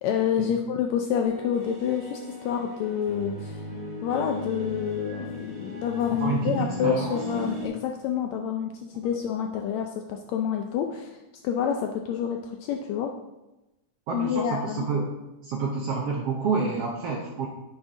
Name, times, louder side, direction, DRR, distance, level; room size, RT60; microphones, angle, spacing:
voice 1, 0.0-3.6 4.0-13.1 14.1-14.9, left 8 dB, 80° left, 3 dB, 1.6 m, -28 dB
sound 1, 1.2-7.7, left 1 dB, 45° right, 0.8 m, -36 dB
voice 2, 6.1-7.2 14.1-15.1 15.4-17.5, right 4 dB, 75° right, 0 dB, 1.4 m, -29 dB
9.8 x 5.0 x 3.7 m, 0.99 s
omnidirectional pair, 3.6 m